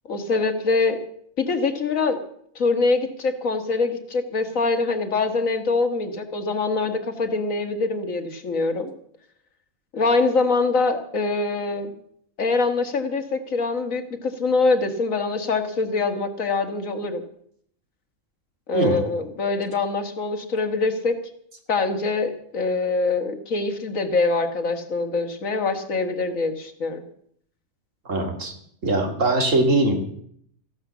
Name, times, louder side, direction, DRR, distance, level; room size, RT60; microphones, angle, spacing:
voice 1, 0.1-1.0 1.4-2.2 2.6-8.9 9.9-11.9 12.4-17.2 18.7-21.2 21.7-27.0, left 3 dB, 70° left, 6 dB, 2.0 m, -24 dB
voice 2, 28.1-28.5 28.8-29.9, right 2 dB, 65° right, 4 dB, 2.7 m, -21 dB
15.0 x 11.0 x 7.1 m, 0.66 s
omnidirectional pair, 1.4 m